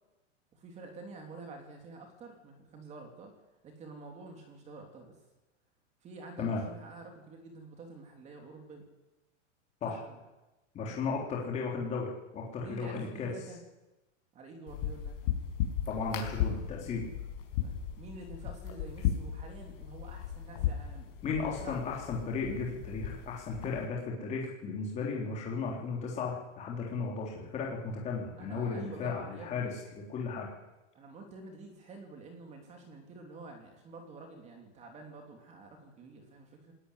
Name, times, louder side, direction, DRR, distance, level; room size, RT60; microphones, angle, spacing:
voice 1, 0.5-3.3 3.6-5.1 6.0-8.8 9.8-10.2 10.9-11.0 12.6-13.6 14.3-15.2 17.6-21.1 21.6-21.8 28.4-29.7 30.9-36.7, right 3 dB, 20° right, 3 dB, 3.1 m, -48 dB
voice 2, 10.7-13.3 15.9-17.1 21.2-30.5, left 4 dB, 20° left, -2 dB, 3.5 m, -35 dB
sound 1, 14.7-23.8, left 10 dB, 45° left, 5.6 m, -36 dB
19.0 x 19.0 x 9.9 m, 1.0 s
supercardioid pair, 170°, 37 cm